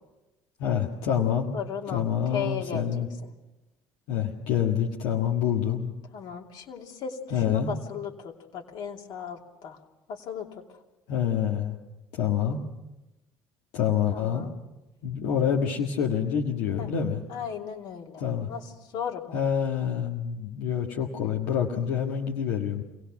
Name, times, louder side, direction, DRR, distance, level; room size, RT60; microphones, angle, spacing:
voice 1, 0.6-1.5 1.9-3.1 4.1-5.9 7.3-7.7 11.1-11.8 12.2-12.6 13.7-14.4 15.0-17.2 18.2-18.5 19.3-22.8, left 8 dB, 85° left, -1 dB, 1.7 m, -27 dB
voice 2, 1.5-2.1 2.3-2.8 6.1-7.2 7.5-9.8 10.1-10.5 14.1-14.5 16.8-16.9 17.3-18.2 18.5-18.6 18.9-19.4, left 7 dB, 65° left, 2 dB, 2.8 m, -35 dB
26.0 x 17.5 x 6.0 m, 1.0 s
supercardioid pair, 90°, 8 cm